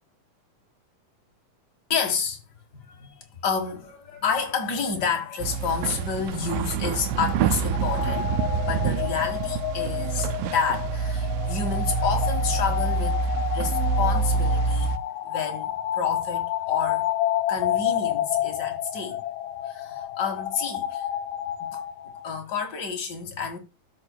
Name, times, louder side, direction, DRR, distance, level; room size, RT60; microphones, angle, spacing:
voice 1, 1.9-2.4 2.8-15.0 15.2-17.1 17.5-19.2 19.6-21.1 21.7-21.8 22.2-23.6, left 6 dB, 40° left, 1.6 m, -30 dB
sound 1, 5.4-15.0, right 5 dB, 85° right, 2.2 m, -26 dB
sound 2, 7.7-22.4, left 12 dB, 85° left, 2.2 m, -30 dB
13.5 x 5.3 x 2.2 m
omnidirectional pair, 3.8 m